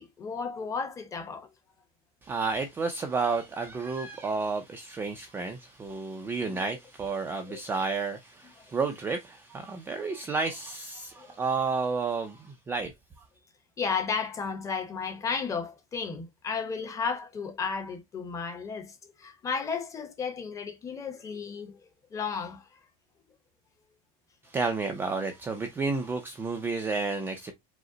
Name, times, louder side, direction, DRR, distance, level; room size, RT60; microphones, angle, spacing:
voice 1, 0.0-1.5 6.4-6.6 7.5-7.6 11.2-11.4 13.8-22.7, left 5 dB, 15° left, 0.8 m, -34 dB
voice 2, 2.2-12.9 24.4-27.5, right 4 dB, 10° right, 0.4 m, -31 dB
5.0 x 2.0 x 3.8 m
supercardioid pair, 165°, 19 cm